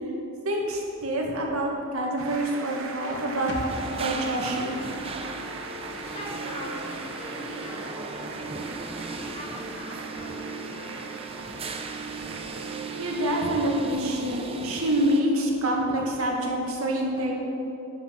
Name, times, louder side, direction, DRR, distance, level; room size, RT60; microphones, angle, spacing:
voice 1, 0.4-3.6 3.9-4.8 13.0-17.4, right 1 dB, 80° right, -1 dB, 1.9 m, -26 dB
sound 1, 2.2-14.3, right 3 dB, 65° right, 1.1 m, -41 dB
sound 2, 3.5-7.0 7.2-7.3, left 1 dB, 55° left, 1.2 m, -43 dB
sound 3, 3.7-15.2, right 3 dB, 25° right, 0.6 m, -37 dB
voice 2, 6.1-11.2, left 1 dB, 30° left, -3 dB, 2.1 m, -42 dB
10.0 x 8.6 x 5.9 m, 2.9 s
head